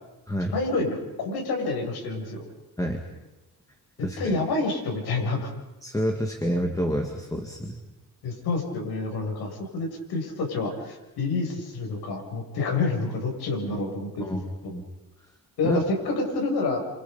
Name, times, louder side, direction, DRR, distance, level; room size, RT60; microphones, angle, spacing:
voice 1, 0.5-2.4 4.2-5.5 8.2-14.5 15.6-16.8, left 3 dB, 80° left, 1 dB, 7.4 m, -28 dB
voice 2, 4.0-4.4 5.8-7.8 14.2-14.4 14.7-14.8 15.6-15.8, equal, 10° left, 3 dB, 1.9 m, -28 dB
30.0 x 27.0 x 5.4 m, 1.1 s
cardioid pair, 165°, 37 cm